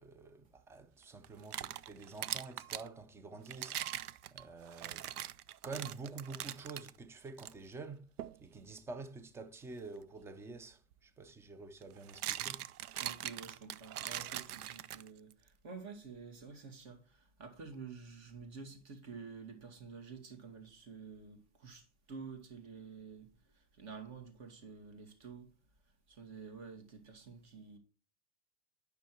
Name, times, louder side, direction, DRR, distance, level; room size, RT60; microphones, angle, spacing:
voice 1, 0.0-3.8 4.3-5.1 5.6-8.1 8.4-12.6, right 4 dB, 5° right, 0.4 m, -48 dB
sound 1, 1.2-2.9 3.5-6.9 7.4-7.5 8.2-8.4 10.5-10.6 11.8-15.3, right 12 dB, 80° right, 0.6 m, -42 dB
voice 2, 13.0-23.3 23.7-25.5 26.1-27.8, right 5 dB, 40° right, 2.3 m, -50 dB
9.2 x 5.8 x 4.7 m
hypercardioid pair, 115°, 44 cm